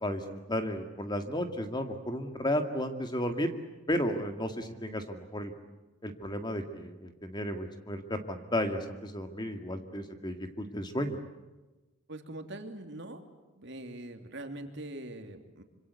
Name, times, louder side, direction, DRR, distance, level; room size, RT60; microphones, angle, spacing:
voice 1, 0.0-3.5 3.9-5.5 6.0-11.2, equal, 20° left, 7 dB, 2.0 m, -33 dB
voice 2, 12.1-13.2 13.5-15.6, right 1 dB, 55° right, 6 dB, 2.9 m, -42 dB
26.5 x 26.0 x 8.2 m, 1.1 s
head